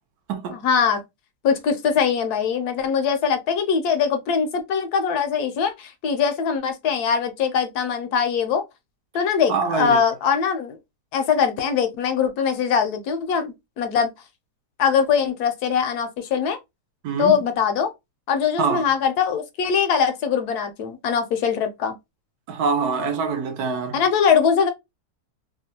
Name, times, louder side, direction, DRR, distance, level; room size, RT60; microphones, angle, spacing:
voice 1, 0.5-1.0 1.4-8.6 9.1-10.8 11.1-14.1 14.8-16.6 17.2-17.9 18.3-22.0 23.9-24.7, left 7 dB, 70° left, 1.0 m, -22 dB
voice 2, 9.5-10.0 17.0-17.4 18.6-18.9 22.5-24.0, right 5 dB, 70° right, 1.0 m, -24 dB
2.9 x 2.2 x 2.7 m
omnidirectional pair, 1.8 m